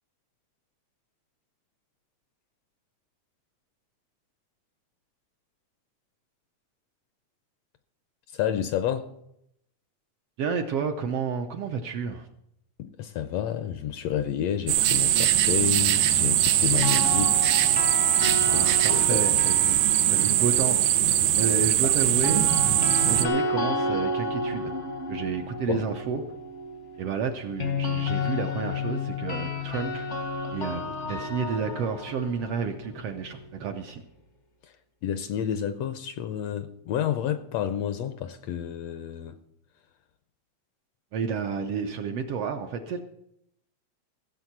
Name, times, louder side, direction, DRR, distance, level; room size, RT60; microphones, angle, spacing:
voice 1, 8.3-9.1 12.8-17.5 18.5-19.3 21.8-21.9 25.7-25.8 34.6-34.7 35.0-39.4, left 9 dB, 75° left, 1.6 m, -30 dB
voice 2, 10.4-12.3 18.5-19.8 20.1-22.5 23.0-24.7 25.1-26.3 27.0-30.1 30.5-34.0 41.1-43.0, right 6 dB, 70° right, 1.5 m, -31 dB
sound 1, 14.7-23.3, right 12 dB, 85° right, 2.2 m, -21 dB
sound 2, 16.6-20.8 22.0-33.9, left 3 dB, 55° left, 0.8 m, -32 dB
16.0 x 7.1 x 5.9 m
omnidirectional pair, 3.3 m